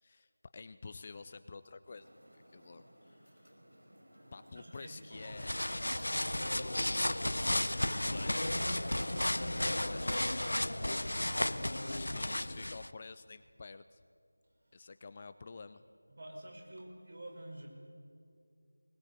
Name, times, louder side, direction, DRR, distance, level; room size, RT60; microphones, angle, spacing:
voice 1, 0.0-3.5 4.3-5.6 6.4-8.7 9.4-10.5 10.9-14.0 14.7-15.8, left 4 dB, 25° left, 11 dB, 0.4 m, -50 dB
sound 1, 1.9-9.2, equal, 85° right, 5.2 m, -58 dB
voice 2, 4.5-5.3 14.7-14.8 16.2-17.7, right 1 dB, 50° right, 1 dB, 5.7 m, -49 dB
sound 2, 5.1-12.9, left 1 dB, 80° left, 0.8 m, -33 dB
21.5 x 20.0 x 8.3 m, 2.4 s
figure-of-eight pair, 175°, 0 cm